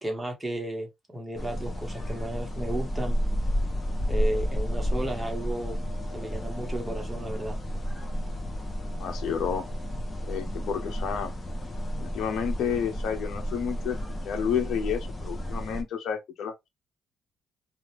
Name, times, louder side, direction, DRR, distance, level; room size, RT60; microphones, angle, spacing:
voice 1, 0.0-3.2 4.1-5.8 6.1-7.6, right 1 dB, 15° right, 1.2 m, -33 dB
sound 1, 1.4-15.8, equal, 25° left, 0.9 m, -31 dB
voice 2, 9.0-9.6 10.3-11.3 12.0-14.0 14.2-16.7, left 7 dB, 75° left, 0.6 m, -30 dB
2.8 x 2.4 x 3.1 m
cardioid pair, 90°, 0 cm